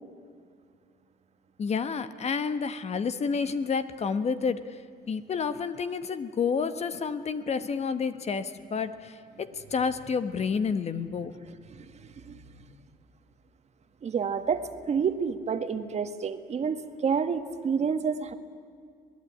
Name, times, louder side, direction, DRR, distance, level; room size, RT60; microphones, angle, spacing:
voice 1, 1.6-4.8 5.1-11.4, left 5 dB, 40° left, 11 dB, 1.3 m, -30 dB
voice 2, 11.9-12.4 14.0-18.3, right 6 dB, 40° right, 9 dB, 1.6 m, -29 dB
27.0 x 19.0 x 9.9 m, 2.2 s
cardioid pair, 110°, 17 cm